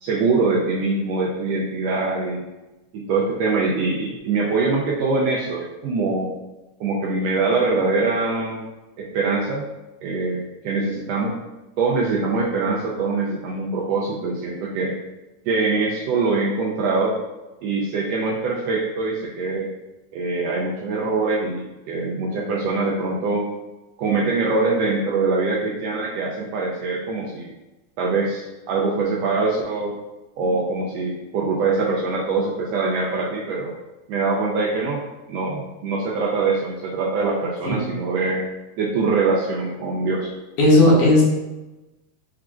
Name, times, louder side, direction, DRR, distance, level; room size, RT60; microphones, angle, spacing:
voice 1, 0.0-2.4 2.9-6.3 6.8-8.7 9.0-9.6 10.0-11.3 11.8-14.9 15.4-17.2 17.6-19.7 20.1-23.5 24.0-27.5 28.0-29.9 30.4-33.7 34.1-35.0 35.3-38.4 38.8-40.3, right 3 dB, 90° right, -3 dB, 1.4 m, -23 dB
voice 2, 40.6-41.2, left 1 dB, 80° left, -5 dB, 2.6 m, -14 dB
5.9 x 3.6 x 2.2 m, 1.1 s
omnidirectional pair, 3.5 m